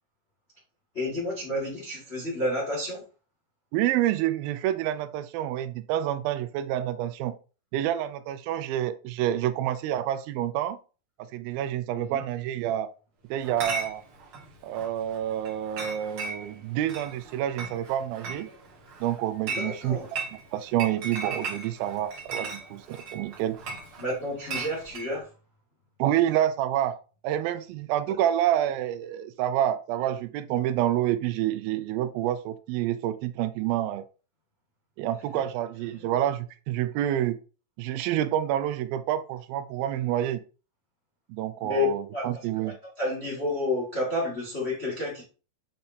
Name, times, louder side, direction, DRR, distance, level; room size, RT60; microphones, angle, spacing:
voice 1, 0.9-3.0 11.9-12.2 19.4-20.1 24.0-25.2 41.6-41.9 42.1-42.3 43.0-45.2, left 2 dB, 35° left, -4 dB, 1.1 m, -30 dB
voice 2, 3.7-7.4 7.7-10.8 11.2-12.9 13.3-14.0 14.6-18.5 19.0-23.6 26.0-27.0 27.2-34.0 35.0-37.4 37.8-40.4 41.3-42.8, right 12 dB, 85° right, 12 dB, 2.3 m, -28 dB
Chatter / Chink clink, 13.4-25.1, right 4 dB, 55° right, 1.5 m, -38 dB
6.5 x 5.7 x 2.7 m, 0.35 s
omnidirectional pair, 4.2 m